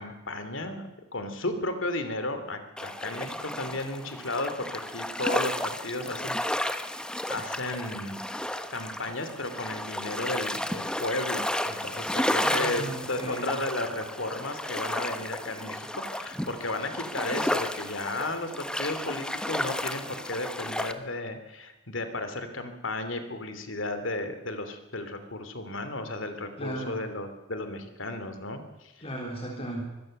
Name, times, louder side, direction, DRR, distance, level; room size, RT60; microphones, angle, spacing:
voice 1, 0.0-6.4 7.3-8.4 8.7-28.9, left 2 dB, 70° left, 9 dB, 2.9 m, -34 dB
sound 1, 2.8-20.9, left 1 dB, 5° left, 1.2 m, -32 dB
voice 2, 12.4-13.5 26.6-27.0 29.0-29.8, right 1 dB, 30° left, 0 dB, 3.8 m, -36 dB
24.0 x 16.5 x 6.7 m, 1.1 s
head